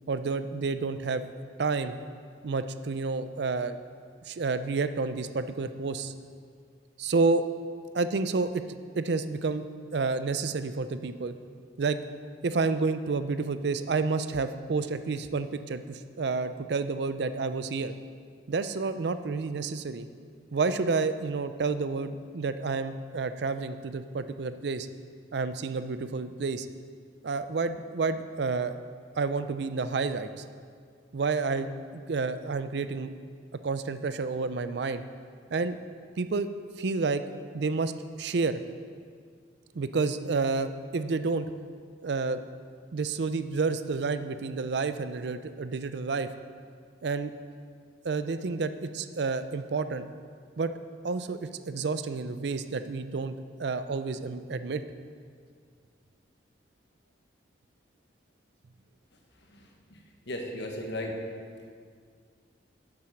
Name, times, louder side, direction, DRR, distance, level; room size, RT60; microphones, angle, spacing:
voice 1, 0.1-1.3 1.6-1.9 2.4-3.8 4.2-6.1 7.0-7.4 7.9-9.6 9.9-11.3 11.8-12.0 12.4-17.9 18.5-20.1 20.5-24.9 25.3-26.7 27.2-28.7 29.2-30.4 31.1-33.1 33.6-35.0 35.5-35.8 36.2-36.5 36.8-37.2 37.5-38.6 39.7-41.5 42.0-42.4 42.9-46.3 47.0-47.3 48.0-50.1 50.6-50.7 51.0-53.3 53.6-54.8, right 4 dB, 65° right, 11 dB, 0.5 m, -30 dB
voice 2, 59.5-61.2, left 1 dB, 70° left, 1 dB, 1.4 m, -37 dB
8.7 x 7.6 x 5.8 m, 2.1 s
head